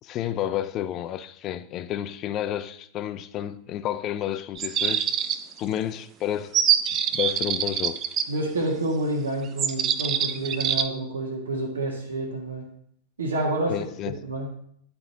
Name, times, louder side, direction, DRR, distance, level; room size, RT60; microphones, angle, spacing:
voice 1, 0.0-5.1 5.6-6.6 7.1-8.1 13.7-14.2, left 11 dB, 35° left, 0.4 m, -30 dB
sound 1, 4.5-5.6 6.5-8.2 9.6-10.9, right 9 dB, 30° right, 0.4 m, -24 dB
voice 2, 8.3-12.7 13.2-13.8 14.2-14.5, right 2 dB, 70° right, 1.5 m, -28 dB
11.0 x 4.8 x 2.7 m
figure-of-eight pair, 90°, 0 cm